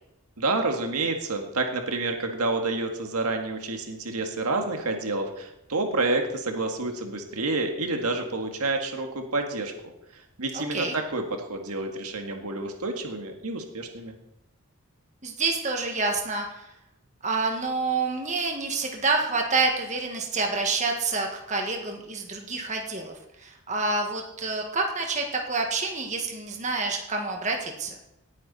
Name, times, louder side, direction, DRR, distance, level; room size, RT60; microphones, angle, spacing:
voice 1, 0.4-9.7 10.4-14.1, right 2 dB, 90° right, 4 dB, 1.8 m, -29 dB
voice 2, 10.5-11.0 15.2-16.4 17.2-23.1 23.4-27.9, right 3 dB, 30° right, 2 dB, 1.8 m, -28 dB
18.5 x 9.5 x 4.3 m, 0.85 s
head